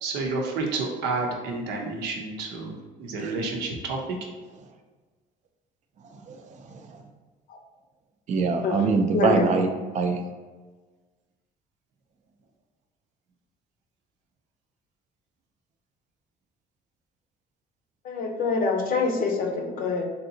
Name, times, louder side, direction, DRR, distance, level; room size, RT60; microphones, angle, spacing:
voice 1, 0.0-4.3, right 3 dB, 90° right, 1 dB, 0.7 m, -30 dB
voice 2, 6.1-7.0 8.3-9.7 9.9-10.2, right 4 dB, 45° right, 5 dB, 0.4 m, -24 dB
voice 3, 9.1-9.5 18.0-20.1, left 4 dB, 60° left, 3 dB, 0.6 m, -25 dB
3.3 x 2.7 x 2.7 m, 1.3 s
cardioid pair, 110°, 17 cm